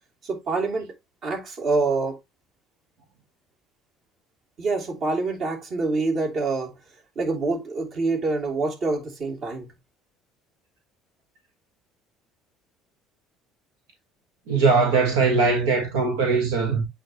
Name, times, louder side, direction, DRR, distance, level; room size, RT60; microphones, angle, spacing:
voice 1, 0.2-0.9 1.2-2.2 4.6-6.8 7.1-9.7, right 3 dB, 55° right, 2.9 m, -26 dB
voice 2, 14.5-16.9, right 4 dB, 85° right, 1.5 m, -20 dB
8.4 x 3.7 x 3.0 m
supercardioid pair, 75°, 0 cm